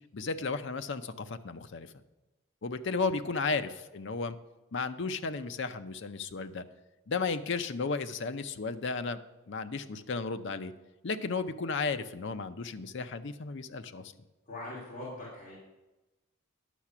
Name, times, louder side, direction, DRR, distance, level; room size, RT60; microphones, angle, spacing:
voice 1, 0.1-1.9 2.6-4.4 4.7-6.6 7.1-9.2 9.5-10.7 11.0-14.1, left 4 dB, 55° left, 10 dB, 0.6 m, -34 dB
voice 2, 14.5-15.5, left 1 dB, 35° left, -8 dB, 2.8 m, -43 dB
10.0 x 6.6 x 6.0 m, 1.1 s
head